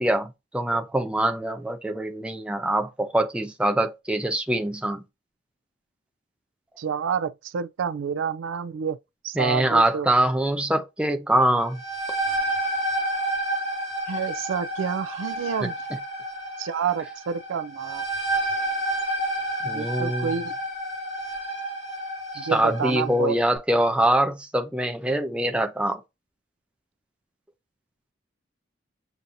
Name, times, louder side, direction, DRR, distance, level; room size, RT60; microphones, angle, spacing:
voice 1, 0.0-5.0 9.4-11.8 19.6-20.3 22.3-26.0, right 1 dB, 5° right, 0.5 m, -24 dB
voice 2, 6.8-9.0 9.2-10.1 14.1-15.7 16.6-18.0 19.6-20.5 22.4-23.4, right 7 dB, 80° right, 0.4 m, -29 dB
sound 1, 11.6-23.1, right 1 dB, 65° left, 2.0 m, -30 dB
7.0 x 2.7 x 2.5 m
head